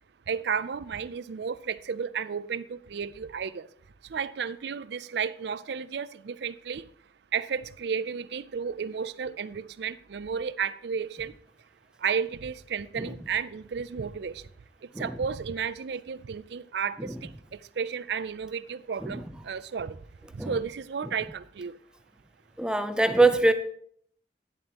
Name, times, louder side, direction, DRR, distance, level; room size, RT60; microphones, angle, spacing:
voice 1, 0.3-3.7 4.1-6.8 7.3-11.3 12.0-14.3 15.0-17.1 17.8-20.0 20.3-21.7, right 6 dB, 65° right, 0.4 m, -32 dB
voice 2, 22.6-23.5, right 2 dB, 5° right, 0.5 m, -23 dB
11.0 x 10.5 x 2.9 m
head